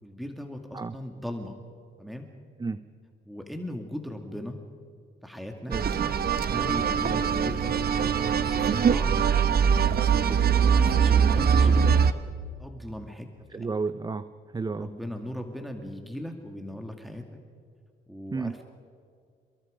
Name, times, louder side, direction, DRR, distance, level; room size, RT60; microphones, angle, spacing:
voice 1, 0.0-1.6 2.0-2.3 3.2-4.6 5.2-5.8 6.5-9.3 9.8-12.0 12.6-13.7 14.8-17.2 18.1-18.6, left 1 dB, ahead, 3 dB, 2.3 m, -38 dB
sound 1, 5.7-12.1, right 7 dB, 50° right, 1.1 m, -22 dB
voice 2, 13.5-14.9 18.3-18.6, right 4 dB, 20° right, 13 dB, 0.7 m, -32 dB
29.5 x 22.0 x 5.1 m, 2.1 s
cardioid pair, 90°, 20 cm